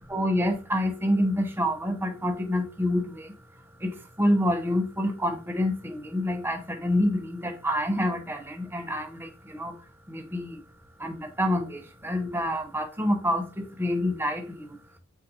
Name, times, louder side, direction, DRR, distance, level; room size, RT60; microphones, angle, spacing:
voice 1, 0.1-3.4 3.8-10.6 11.0-15.0, left 1 dB, 10° right, 0.8 m, -27 dB
9.0 x 4.0 x 2.9 m
head